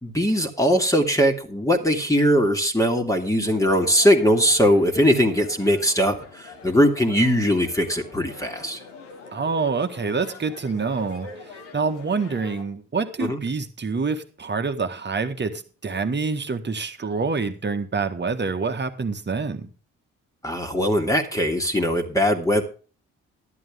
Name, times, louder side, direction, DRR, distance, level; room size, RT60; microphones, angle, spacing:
voice 1, 0.0-8.8 13.2-13.4 20.4-22.6, equal, 10° left, 2 dB, 2.3 m, -20 dB
sound 1, 3.4-12.6, left 4 dB, 80° left, 1.8 m, -43 dB
voice 2, 9.3-19.7, right 4 dB, 30° right, 8 dB, 1.7 m, -27 dB
12.5 x 11.0 x 3.6 m, 0.37 s
figure-of-eight pair, 45°, 36 cm